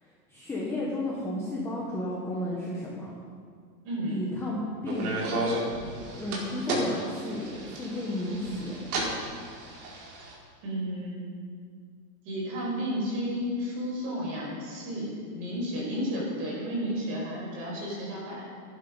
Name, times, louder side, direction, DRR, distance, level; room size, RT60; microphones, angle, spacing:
voice 1, 0.0-3.1 4.1-5.6 6.1-8.8, left 1 dB, 5° left, -5 dB, 1.1 m, -33 dB
voice 2, 3.8-4.2 10.6-11.4 12.2-18.4, equal, 30° right, -3 dB, 5.1 m, -32 dB
sound 1, 4.8-10.3, right 2 dB, 60° right, 4.5 m, -33 dB
22.5 x 11.5 x 5.2 m, 2.1 s
supercardioid pair, 175°, 48 cm